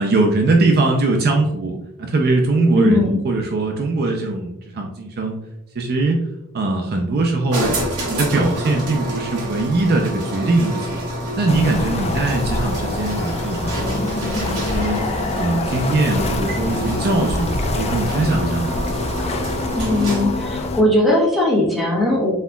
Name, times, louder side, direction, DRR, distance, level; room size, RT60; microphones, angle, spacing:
voice 1, 0.0-5.4 5.8-6.2 6.5-7.8 8.1-11.0 11.4-15.0 15.4-17.5 17.8-18.7, right 2 dB, 45° right, 2 dB, 0.5 m, -21 dB
voice 2, 2.7-3.2 19.8-22.3, left 1 dB, ahead, -4 dB, 1.1 m, -18 dB
sound 1, 7.5-20.4, equal, 75° right, 1.5 m, -28 dB
sound 2, 11.5-20.8, left 2 dB, 30° left, 0.4 m, -25 dB
4.3 x 4.0 x 2.3 m, 0.88 s
head